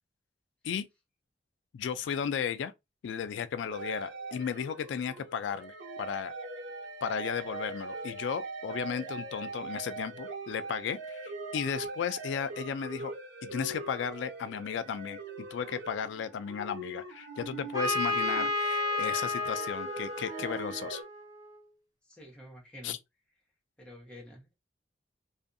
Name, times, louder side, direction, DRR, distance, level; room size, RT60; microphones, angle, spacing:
voice 1, 1.7-2.7 3.0-6.3 7.0-13.1 13.4-21.0 22.8-23.0, left 7 dB, 85° left, 0.3 m, -35 dB
sound 1, 3.7-21.0, right 2 dB, 80° right, 0.7 m, -41 dB
Trumpet, 17.7-21.5, left 3 dB, 20° right, 0.6 m, -32 dB
voice 2, 22.1-23.0 23.8-24.5, left 1 dB, 5° left, 0.9 m, -49 dB
2.6 x 2.4 x 2.5 m
head